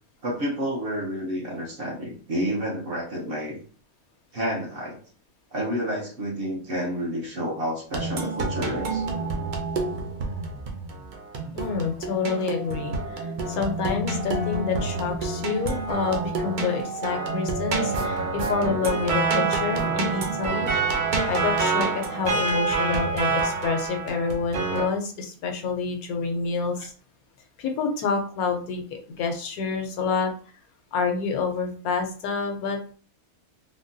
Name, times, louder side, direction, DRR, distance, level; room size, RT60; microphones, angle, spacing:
voice 1, 0.2-3.6 4.3-5.0 5.5-9.0, equal, 50° right, -2 dB, 0.8 m, -29 dB
sound 1, 7.9-24.9, right 3 dB, 75° right, 0.4 m, -27 dB
voice 2, 11.5-20.7 21.3-26.9 27.6-30.3 30.9-32.9, left 5 dB, 85° left, 4 dB, 1.1 m, -28 dB
3.6 x 2.2 x 2.6 m, 0.42 s
omnidirectional pair, 1.5 m